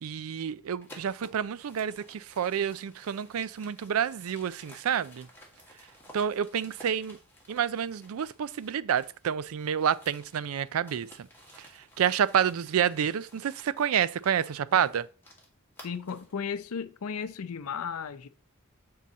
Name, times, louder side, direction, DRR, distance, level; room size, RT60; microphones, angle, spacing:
voice 1, 0.0-5.3 6.1-7.2 7.5-11.1 12.0-15.0, right 8 dB, 70° right, 0.4 m, -28 dB
sound 1, 0.8-9.3 9.6-16.4, equal, 10° left, 1.7 m, -55 dB
voice 2, 15.8-18.3, left 6 dB, 90° left, 0.5 m, -35 dB
7.3 x 3.8 x 4.1 m
head